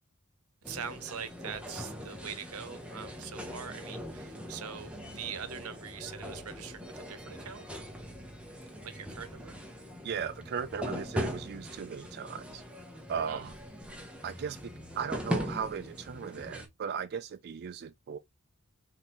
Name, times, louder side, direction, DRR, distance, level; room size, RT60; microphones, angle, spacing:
sound 1, 0.6-16.7, equal, 5° right, 1.0 m, -41 dB
voice 1, 0.6-7.6 8.8-9.5 13.3-13.5, right 7 dB, 90° right, 0.8 m, -43 dB
voice 2, 10.0-12.6 13.1-13.6 14.2-18.2, right 7 dB, 50° right, 0.4 m, -37 dB
4.0 x 3.8 x 2.9 m
head